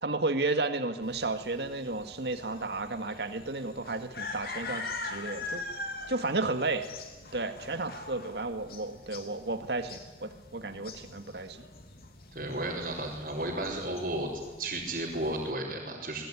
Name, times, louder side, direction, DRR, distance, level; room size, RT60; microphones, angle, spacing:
voice 1, 0.0-6.9 7.3-11.7, right 3 dB, 70° right, 8 dB, 1.9 m, -33 dB
sound 1, 1.0-15.5, left 3 dB, 55° left, 3.0 m, -43 dB
voice 2, 12.3-14.3 14.6-16.2, right 1 dB, 50° right, -7 dB, 4.8 m, -33 dB
25.0 x 21.0 x 10.0 m, 1.2 s
head